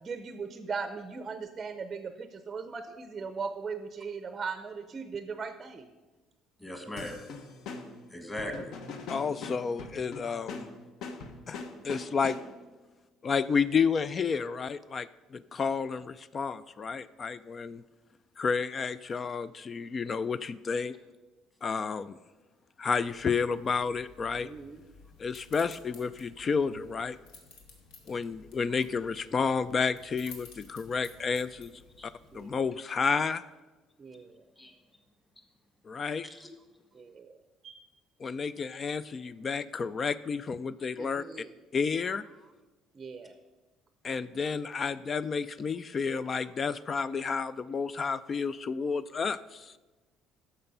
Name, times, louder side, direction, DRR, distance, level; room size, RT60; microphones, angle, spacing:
voice 1, 0.0-5.9 24.4-24.8 32.3-32.6 34.0-34.4 36.9-37.4 37.6-37.9 41.0-41.5 42.9-43.4, right 5 dB, 25° right, 9 dB, 0.6 m, -39 dB
voice 2, 6.6-7.2 8.1-8.7 32.0-32.1 34.6-34.7 36.2-36.5, left 1 dB, 10° left, 5 dB, 1.4 m, -38 dB
sound 1, 7.0-12.7, left 4 dB, 60° left, 1.2 m, -42 dB
voice 3, 9.1-10.7 11.5-12.4 13.2-17.8 18.4-20.9 21.6-22.2 22.8-24.5 25.2-27.2 28.1-31.7 32.0-33.4 35.9-36.3 38.2-41.4 41.7-42.2 44.0-49.7, left 5 dB, 30° left, 16 dB, 0.3 m, -31 dB
sound 2, 23.0-32.7, left 4 dB, 90° left, 2.2 m, -54 dB
11.5 x 6.9 x 5.4 m, 1.2 s
cardioid pair, 150°, 0 cm